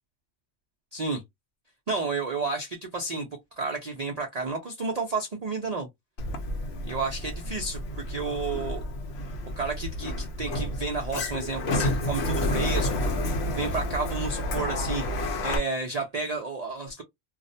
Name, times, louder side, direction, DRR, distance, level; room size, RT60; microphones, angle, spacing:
voice 1, 0.9-1.2 1.9-3.3 3.6-5.9 6.8-8.8 9.6-15.1 15.4-17.0, right 3 dB, 65° right, 0.4 m, -31 dB
Sliding door, 6.2-15.6, left 1 dB, 60° left, 0.8 m, -30 dB
2.3 x 2.0 x 2.6 m
omnidirectional pair, 1.3 m